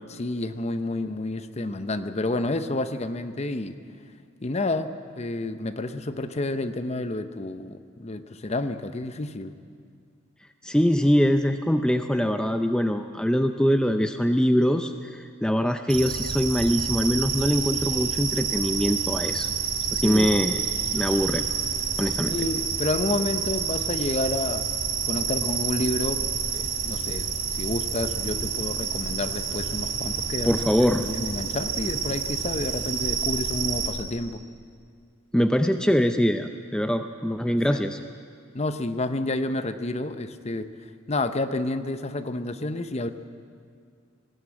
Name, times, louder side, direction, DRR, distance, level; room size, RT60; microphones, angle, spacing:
voice 1, 0.1-3.8 4.4-9.5 20.0-20.6 22.3-24.7 25.0-30.6 31.0-34.4 37.5-37.8 38.5-43.1, left 2 dB, 30° left, 10 dB, 0.8 m, -30 dB
voice 2, 10.6-19.5 19.9-20.6 20.9-21.4 22.0-22.4 30.4-31.0 35.3-38.0, equal, 5° left, 7 dB, 0.5 m, -23 dB
sound 1, 15.9-33.9, right 6 dB, 85° right, 3.5 m, -28 dB
19.0 x 16.5 x 8.8 m, 2.2 s
head